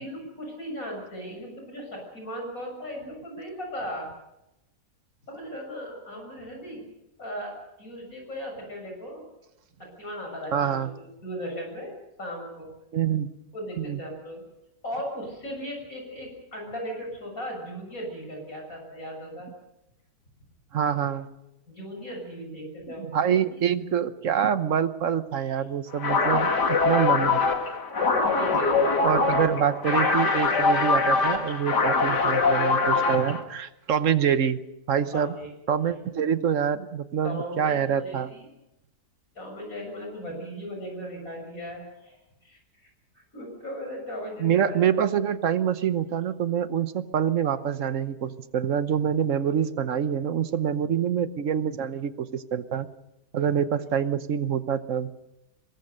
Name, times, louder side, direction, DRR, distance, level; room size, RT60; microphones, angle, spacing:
voice 1, 0.0-4.1 5.3-6.8 7.2-9.2 9.8-11.9 12.2-12.7 13.5-14.4 14.8-19.5 21.7-23.6 26.5-26.9 28.3-29.1 35.0-35.5 37.2-38.4 39.4-42.6 43.2-44.8, equal, 55° left, 1 dB, 7.1 m, -37 dB
voice 2, 10.5-10.9 12.9-13.3 13.8-14.0 20.7-21.3 23.0-26.5 26.8-27.4 29.0-34.6 34.9-35.3 35.7-38.3 44.4-52.9 53.3-55.1, right 8 dB, 55° right, 13 dB, 1.2 m, -26 dB
sound 1, 26.0-33.4, left 4 dB, 90° left, 2.8 m, -23 dB
24.0 x 20.0 x 6.6 m, 0.89 s
omnidirectional pair, 1.7 m